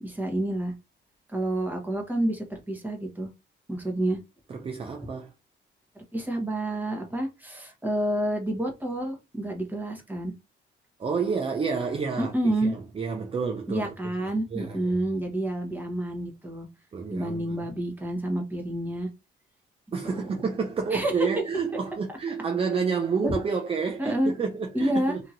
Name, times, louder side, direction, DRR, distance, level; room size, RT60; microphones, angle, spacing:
voice 1, 0.0-0.7 1.3-3.3 3.7-4.2 6.1-10.3 12.2-12.7 13.7-16.7 17.1-19.1 20.0-20.3 20.9-21.3 22.1-22.2 23.2-23.4 24.0-24.3 24.7-25.2, right 1 dB, 10° right, 1.2 m, -29 dB
voice 2, 4.5-5.3 11.0-12.3 12.6-13.9 14.2-15.0 16.9-17.6 19.9-25.2, right 5 dB, 30° right, 0.5 m, -29 dB
2.9 x 2.8 x 2.5 m
cardioid pair, 90°, 20 cm